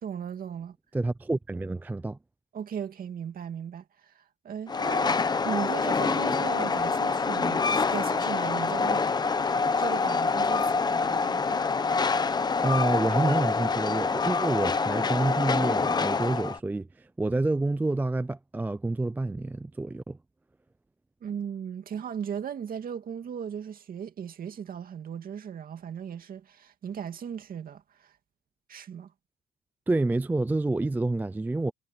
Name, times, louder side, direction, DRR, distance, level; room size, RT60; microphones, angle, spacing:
voice 1, 0.0-0.8 2.5-9.0 9.8-11.6 21.2-28.2 28.7-29.1, right 8 dB, 45° right, 2.4 m, -37 dB
voice 2, 0.9-2.2 12.6-20.2 29.9-31.7, right 2 dB, 10° right, 0.4 m, -28 dB
Train, 4.7-16.6, left 4 dB, 20° left, 0.8 m, -26 dB
cardioid pair, 145°, 21 cm